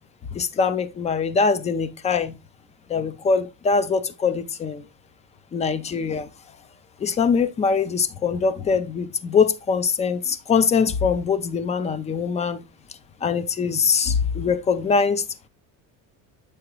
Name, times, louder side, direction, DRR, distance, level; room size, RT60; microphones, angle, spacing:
voice 1, 0.3-2.4 2.9-4.8 5.5-6.3 7.0-12.6 13.2-15.2, left 5 dB, 20° left, 0.4 m, -22 dB
7.7 x 4.9 x 2.9 m
cardioid pair, 145°, 40 cm